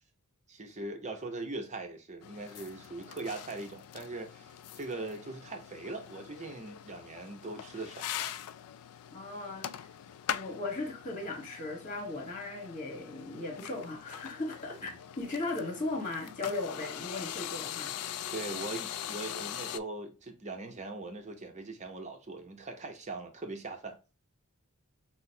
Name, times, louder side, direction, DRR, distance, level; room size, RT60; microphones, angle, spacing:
voice 1, 0.5-8.3 14.9-15.0 18.3-24.0, right 2 dB, 30° right, 0.7 m, -41 dB
sound 1, 2.2-19.8, left 10 dB, 80° left, 0.3 m, -42 dB
voice 2, 9.1-9.9 10.3-18.0, left 2 dB, 35° left, 1.3 m, -37 dB
6.1 x 2.1 x 2.7 m
head